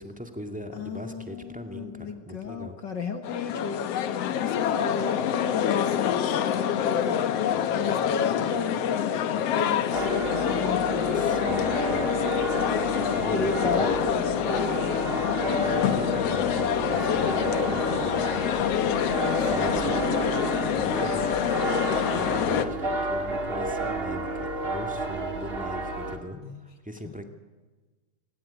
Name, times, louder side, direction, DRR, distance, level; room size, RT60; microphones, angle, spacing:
voice 1, 0.0-2.8 11.1-12.1 12.6-13.9 15.7-18.5 19.5-20.1 20.7-21.2 21.9-27.3, equal, 5° right, 5 dB, 0.9 m, -40 dB
voice 2, 0.7-7.3 7.7-11.7 13.3-15.9 19.2-19.7 26.3-26.6 27.0-27.1, left 4 dB, 40° left, 7 dB, 1.9 m, -35 dB
sound 1, 3.2-22.7, left 9 dB, 65° left, 1.7 m, -26 dB
sound 2, 9.9-26.2, right 1 dB, 20° right, 1.8 m, -31 dB
25.0 x 18.5 x 9.5 m, 1.3 s
omnidirectional pair, 3.7 m